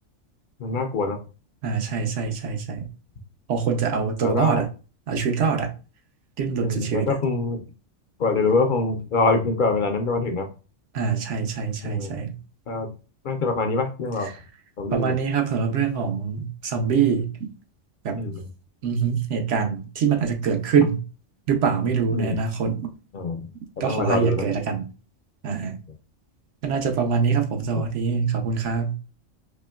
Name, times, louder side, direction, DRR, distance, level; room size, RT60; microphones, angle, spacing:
voice 1, 0.6-1.2 4.2-4.7 6.6-7.6 8.2-10.5 11.8-12.1 12.7-12.9 13.2-14.3 14.8-15.2 18.1-18.5 22.1-22.4 23.1-23.5 23.9-24.4, left 3 dB, 60° left, 0.5 m, -24 dB
voice 2, 1.6-2.9 3.5-4.7 5.1-5.7 6.4-7.1 10.9-12.4 14.9-17.3 18.0-18.2 18.8-21.0 21.5-22.9 23.8-24.8 25.4-25.8 26.6-28.9, right 6 dB, 70° right, 1.0 m, -24 dB
4.2 x 2.9 x 2.2 m
omnidirectional pair, 1.3 m